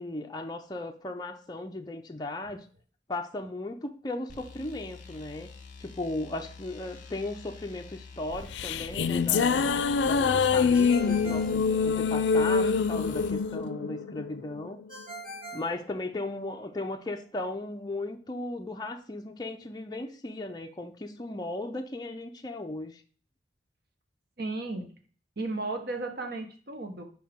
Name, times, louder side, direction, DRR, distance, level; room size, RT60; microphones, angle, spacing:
voice 1, 0.0-2.7 3.1-5.5 5.8-9.6 10.0-14.8 15.5-23.0, left 2 dB, 25° left, 3 dB, 0.5 m, -36 dB
sound 1, 4.3-13.4, left 4 dB, 50° left, 1.0 m, -47 dB
sound 2, 8.3-14.9, left 5 dB, 80° left, 0.4 m, -25 dB
Ringtone, 10.7-12.4 14.9-16.6, right 1 dB, 35° right, 2.4 m, -44 dB
voice 2, 24.4-24.9 25.4-27.0, right 2 dB, 65° right, 5 dB, 1.2 m, -34 dB
6.0 x 4.6 x 3.6 m, 0.43 s
head